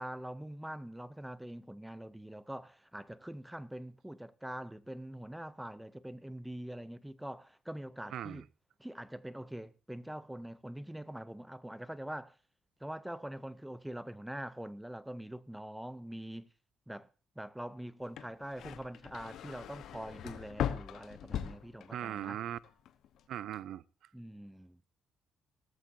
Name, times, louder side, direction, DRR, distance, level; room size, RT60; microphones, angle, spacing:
voice 1, 0.0-8.5 8.8-12.3 12.8-16.5 16.9-17.1 17.4-22.4 24.1-24.8, right 1 dB, 5° right, 0.6 m, -44 dB
voice 2, 8.1-8.4 21.9-22.6 23.3-23.8, right 11 dB, 70° right, 0.5 m, -39 dB
sound 1, 18.0-22.3 22.6-23.2, left 9 dB, 70° left, 1.1 m, -39 dB
17.5 x 14.5 x 2.7 m
cardioid pair, 115°, 0 cm